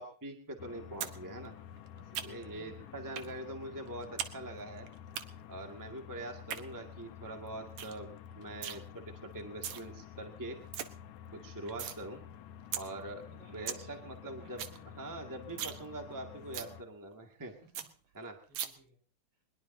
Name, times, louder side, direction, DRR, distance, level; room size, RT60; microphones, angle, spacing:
voice 1, 0.0-1.5 2.2-4.9 5.5-10.6 11.3-12.2 12.7-17.5 18.1-18.4, right 1 dB, 10° right, 3 dB, 0.8 m, -44 dB
sound 1, 0.6-16.8, left 9 dB, 70° left, 1.8 m, -50 dB
sound 2, 1.0-1.2 1.5-2.6 3.2-3.3 3.6-4.3 4.6-5.2 6.3-6.6 7.1-7.2 7.5-7.6 7.8-8.0 8.3-8.8 9.4-9.8 10.2-10.3 10.5-10.9 11.2-12.0 12.3-12.4 12.7-12.8 13.2-13.3 13.5-13.8 14.2-14.3 14.5-14.8 15.1-15.2 15.5-15.8 16.1-16.2 16.5-16.7 17.1-17.2 17.4-17.5 17.7-17.9 18.5-18.7, right 10 dB, 65° right, 2.0 m, -38 dB
voice 2, 2.0-3.5 13.2-15.0 17.4-19.0, right 3 dB, 40° right, 2 dB, 5.9 m, -61 dB
23.0 x 21.0 x 2.8 m, 0.40 s
omnidirectional pair, 4.2 m